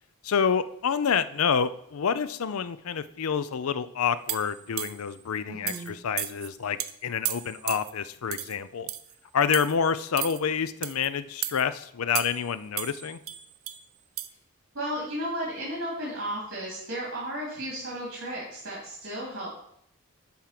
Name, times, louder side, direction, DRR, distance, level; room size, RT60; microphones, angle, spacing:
voice 1, 0.2-8.9 9.3-13.2, left 6 dB, 85° left, 14 dB, 0.5 m, -28 dB
sound 1, 4.3-5.1 5.7-5.9 6.2-6.5 6.8-6.9 7.3-7.9 8.3-8.6 8.9-9.1 9.5-9.8 10.2-10.4 10.8-11.1 11.4-11.6 12.2-12.5 12.8-13.8 14.2-14.3, right 14 dB, 75° right, 0.5 m, -33 dB
voice 2, 5.4-5.9 14.7-19.6, equal, 60° right, -5 dB, 2.6 m, -34 dB
10.0 x 3.7 x 5.8 m, 0.72 s
head